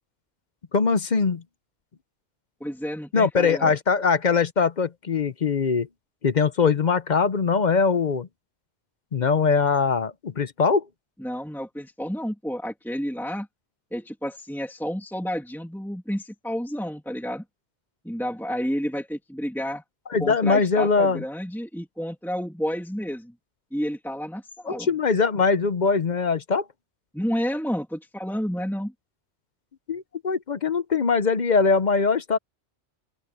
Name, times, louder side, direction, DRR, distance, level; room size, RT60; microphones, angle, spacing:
voice 1, 0.7-1.4 3.1-5.9 6.2-8.3 9.1-10.9 20.1-21.2 24.6-26.6 29.9-32.4, left 5 dB, 45° left, 0.8 m, -22 dB
voice 2, 2.6-3.7 11.2-13.5 13.9-17.4 18.0-19.8 20.2-23.3 23.7-24.9 27.1-28.9, equal, ahead, 2.6 m, -30 dB
open air
omnidirectional pair, 1.1 m